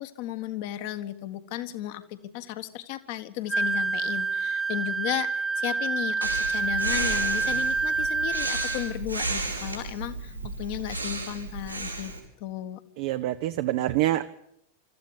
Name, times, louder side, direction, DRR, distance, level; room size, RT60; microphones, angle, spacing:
voice 1, 0.0-5.3 5.6-12.1 12.4-12.8, left 13 dB, 50° left, 10 dB, 1.5 m, -34 dB
Wind instrument woodwind instrument, 3.5-9.0, right 4 dB, 10° right, 1.2 m, -27 dB
Breathing, 6.2-12.2, right 3 dB, 90° right, 4.9 m, -33 dB
voice 2, 13.0-14.4, right 14 dB, 50° right, 9 dB, 0.8 m, -26 dB
25.0 x 14.0 x 8.9 m, 0.76 s
figure-of-eight pair, 90°, 0 cm